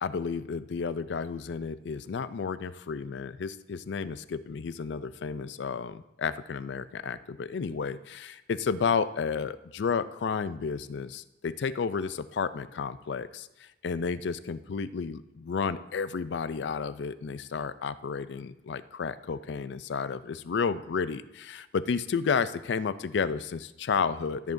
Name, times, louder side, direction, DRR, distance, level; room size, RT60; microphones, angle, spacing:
voice 1, 0.0-24.5, left 5 dB, 75° left, 14 dB, 0.4 m, -32 dB
13.5 x 9.0 x 2.6 m, 0.95 s
head